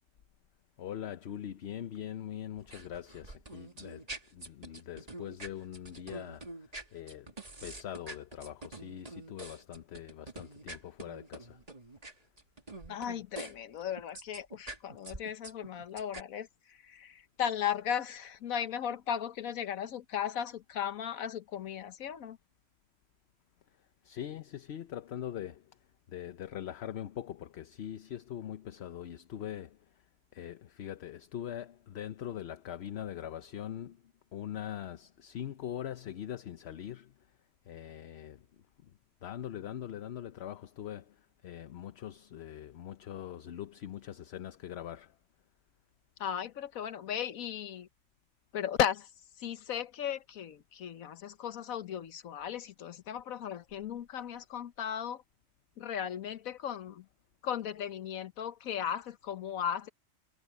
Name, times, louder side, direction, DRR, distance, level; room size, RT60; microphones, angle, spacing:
voice 1, 0.8-7.3 7.6-11.6 24.0-25.7 26.1-29.8 30.3-34.0 34.3-37.1 37.7-38.4 38.8-38.9 39.2-45.2 54.1-54.2, left 10 dB, 60° left, 0.9 m, -42 dB
sound 1, 2.6-13.5 13.8-16.2, right 2 dB, 30° right, 2.2 m, -46 dB
voice 2, 12.9-22.4 46.2-47.9 48.5-49.1 49.4-55.2 55.8-57.0 57.4-59.9, left 9 dB, 90° left, 1.4 m, -36 dB
omnidirectional pair, 1.4 m